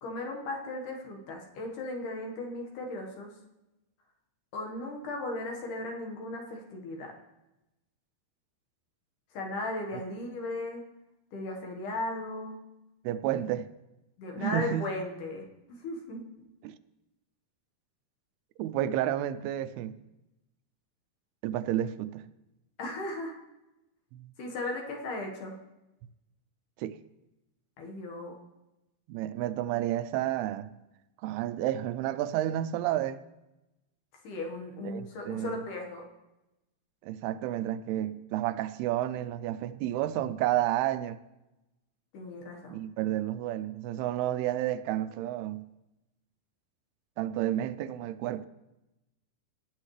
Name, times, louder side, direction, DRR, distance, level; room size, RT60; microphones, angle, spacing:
voice 1, 0.0-3.3 4.5-7.1 9.3-10.8 11.3-12.6 14.2-16.2 22.8-23.3 24.4-25.5 27.8-28.4 34.2-36.0 42.1-42.8, left 2 dB, 60° left, 2.8 m, -36 dB
voice 2, 13.0-13.7 14.4-14.9 16.6-16.7 18.6-20.0 21.4-22.2 24.1-24.3 26.8-27.0 29.1-30.7 31.2-33.2 34.8-35.6 37.0-41.2 42.7-45.6 47.2-48.5, right 13 dB, 90° right, 2.6 m, -31 dB
18.0 x 9.4 x 3.3 m
omnidirectional pair, 4.5 m